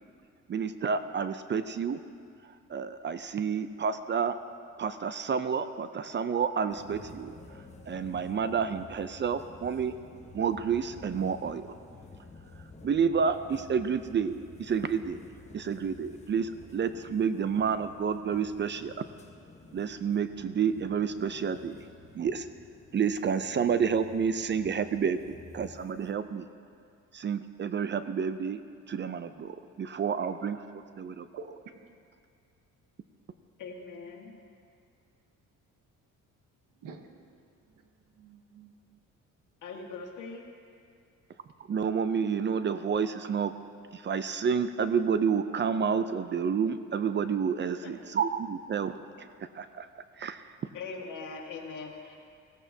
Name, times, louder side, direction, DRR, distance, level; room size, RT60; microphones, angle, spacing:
voice 1, 0.5-2.0 2.7-4.4 4.8-7.3 7.9-9.9 10.3-11.7 12.8-15.2 15.5-18.9 19.7-21.8 22.1-22.5 22.9-25.2 25.5-26.5 27.1-28.6 28.9-30.6 31.0-31.3 41.7-43.5 43.9-48.9 49.5-49.9 50.2-50.4, right 6 dB, 35° right, 11 dB, 0.5 m, -29 dB
sound 1, 6.7-26.1, left 3 dB, 20° left, 1.2 m, -51 dB
voice 2, 33.6-34.3 39.6-40.4 47.8-47.9 50.7-52.2, left 4 dB, 70° left, 0 dB, 1.8 m, -41 dB
voice 3, 36.8-37.4 37.7-39.0, right 6 dB, 80° right, 6 dB, 1.1 m, -48 dB
16.5 x 14.0 x 2.8 m, 2.3 s
cardioid pair, 105°, 32 cm